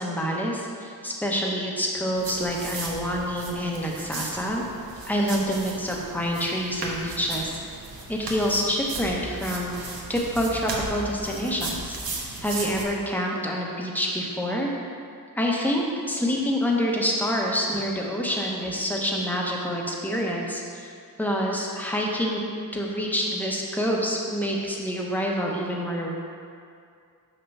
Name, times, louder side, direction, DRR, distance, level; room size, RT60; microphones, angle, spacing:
voice 1, 0.0-4.6 5.0-7.6 8.1-9.7 10.1-12.0 12.4-14.7 15.4-20.9 21.2-22.4 22.7-26.1, equal, 5° left, -2 dB, 0.9 m, -27 dB
sound 1, 2.2-12.8, right 3 dB, 75° right, 1.2 m, -36 dB
6.7 x 5.7 x 5.4 m, 2.3 s
wide cardioid pair, 165°, 36 cm